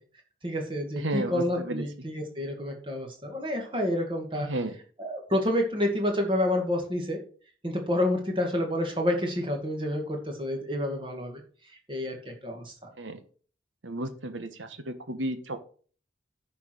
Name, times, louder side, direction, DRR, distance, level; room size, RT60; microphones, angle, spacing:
voice 1, 0.4-4.5 5.0-7.2 7.6-11.4 11.9-12.7, left 1 dB, 25° right, 3 dB, 2.2 m, -29 dB
voice 2, 1.0-1.8 4.3-4.8 13.0-13.2 13.8-15.6, right 1 dB, 90° right, 9 dB, 1.4 m, -33 dB
10.0 x 4.8 x 6.1 m, 0.43 s
head